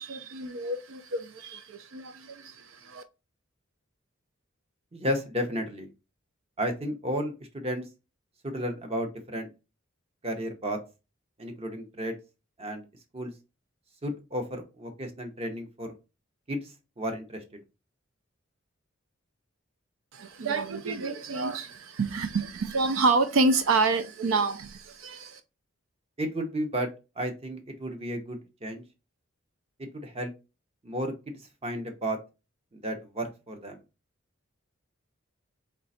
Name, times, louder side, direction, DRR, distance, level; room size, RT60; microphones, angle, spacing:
voice 1, 0.0-3.0 20.1-25.4, right 3 dB, 75° right, 0.4 m, -28 dB
voice 2, 4.9-5.9 6.6-7.9 8.4-9.5 10.2-10.8 11.4-12.2 12.6-12.8 13.1-13.3 14.0-16.0 16.5-16.7 17.0-17.4 26.2-26.9 27.2-28.8 29.8-30.3 30.8-31.3 31.6-32.2 32.7-33.8, equal, 30° right, 0.9 m, -33 dB
3.8 x 3.3 x 4.1 m
head